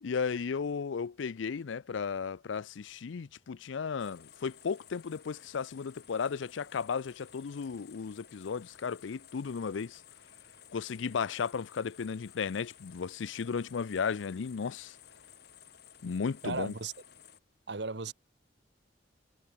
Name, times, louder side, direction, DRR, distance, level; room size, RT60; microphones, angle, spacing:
voice 1, 0.0-10.0 10.7-15.0 16.0-16.7, left 6 dB, 85° left, 0.5 m, -35 dB
sound 1, 4.0-17.4, left 8 dB, 60° left, 7.4 m, -56 dB
voice 2, 16.4-16.9 17.7-18.1, right 4 dB, 65° right, 1.2 m, -35 dB
head